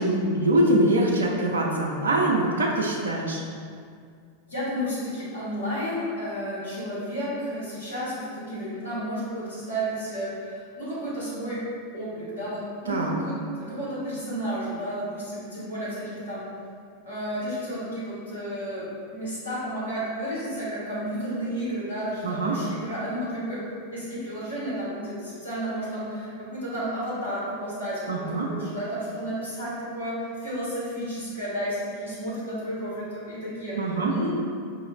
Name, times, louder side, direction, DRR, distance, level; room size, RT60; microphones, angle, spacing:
voice 1, 0.0-3.4 12.9-13.1 22.2-22.5 28.1-28.5 33.8-34.1, right 1 dB, 70° right, -1 dB, 0.5 m, -23 dB
voice 2, 4.5-11.6 11.9-16.5 17.0-23.6 23.9-34.3, equal, 70° left, -10 dB, 1.4 m, -32 dB
5.1 x 2.3 x 3.1 m, 2.2 s
figure-of-eight pair, 90°, 0 cm